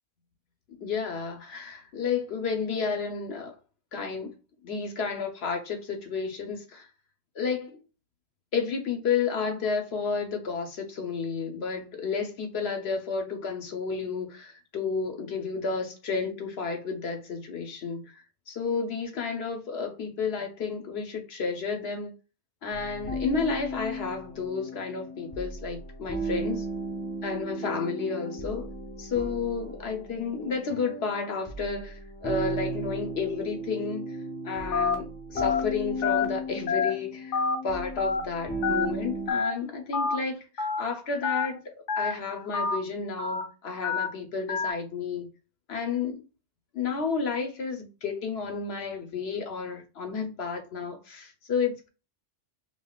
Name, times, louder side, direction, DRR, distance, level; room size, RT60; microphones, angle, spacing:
voice 1, 0.8-3.6 3.9-4.4 4.6-6.9 7.3-7.8 8.5-22.1 22.6-26.7 27.2-28.7 29.0-34.2 34.4-45.3 45.7-46.2 46.7-51.9, left 5 dB, 65° left, 1.1 m, -31 dB
sound 1, 22.7-39.3, right 1 dB, 10° left, 0.6 m, -35 dB
Telephone, 34.7-34.9 35.4-35.6 36.0-36.2 36.7-36.9 37.3-37.6 38.0-38.2 38.6-38.9 39.3-39.5 39.9-40.2 40.6-40.8 41.2-41.5 41.9-42.1 42.5-42.8 43.2-43.4 43.8-44.1 44.5-44.7, left 5 dB, 85° left, 1.2 m, -26 dB
5.3 x 2.4 x 2.4 m
omnidirectional pair, 1.2 m